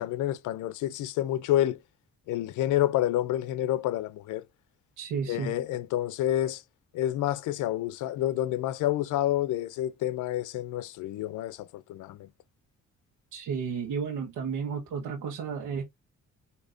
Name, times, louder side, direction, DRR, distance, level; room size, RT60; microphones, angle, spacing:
voice 1, 0.0-1.8 2.3-4.4 5.3-6.6 6.9-12.3, left 13 dB, 85° left, 0.5 m, -29 dB
voice 2, 5.0-5.5 13.3-15.8, right 6 dB, 90° right, 1.1 m, -32 dB
4.8 x 2.8 x 2.6 m
cardioid pair, 90°, 30 cm